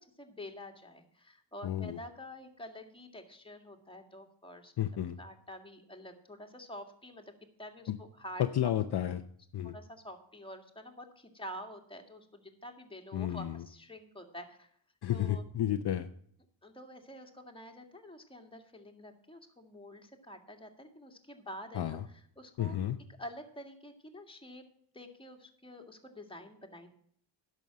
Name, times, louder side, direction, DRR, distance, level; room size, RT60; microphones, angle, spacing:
voice 1, 0.0-4.7 5.2-7.3 7.6-8.4 9.6-14.7 15.1-15.5 16.6-22.8 23.2-24.6 24.9-26.9, left 1 dB, 10° left, 3 dB, 1.9 m, -48 dB
voice 2, 1.6-2.0 4.8-5.2 7.9-8.0 8.4-9.2 9.5-9.7 13.1-13.6 15.0-16.1 21.7-22.0 22.6-23.0, left 11 dB, 55° left, 8 dB, 0.7 m, -31 dB
10.5 x 6.5 x 7.4 m, 0.62 s
cardioid pair, 90°, 46 cm